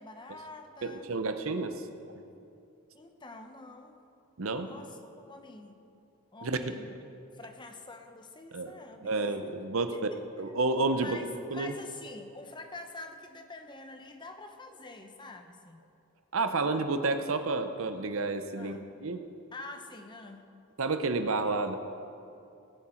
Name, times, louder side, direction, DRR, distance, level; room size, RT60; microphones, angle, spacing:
voice 1, 0.0-1.1 2.9-4.0 4.5-5.8 6.3-7.0 7.3-9.5 9.9-10.2 11.0-15.8 18.5-18.9 19.5-20.5, left 2 dB, 20° left, 6 dB, 0.8 m, -46 dB
voice 2, 0.8-1.8 4.4-4.7 6.4-6.7 8.5-8.7 9.0-10.0 10.4-11.2 11.5-11.7 16.3-19.2 20.8-21.8, right 3 dB, 65° right, 9 dB, 0.8 m, -30 dB
19.0 x 8.5 x 4.4 m, 2.6 s
head